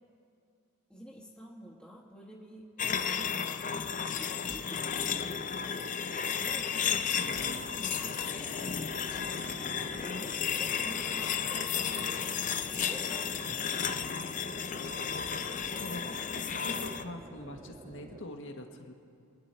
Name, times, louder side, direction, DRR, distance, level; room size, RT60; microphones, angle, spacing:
voice 1, 0.9-3.4 4.2-6.1 6.4-13.8, equal, 5° left, -6 dB, 1.2 m, -51 dB
sound 1, 2.8-17.0, left 7 dB, 35° left, 0.5 m, -33 dB
sound 2, 4.5-5.0 7.3-7.8 9.1-9.9 11.2-11.5 12.5-13.1 13.8-14.5 14.8-15.1, left 3 dB, 75° left, 2.9 m, -52 dB
voice 2, 7.2-7.7 10.3-10.5 15.8-18.9, left 1 dB, 60° left, 4 dB, 1.4 m, -44 dB
sound 3, 7.2-18.3, right 2 dB, 25° right, 0.5 m, -50 dB
27.0 x 10.0 x 4.4 m, 2.5 s
head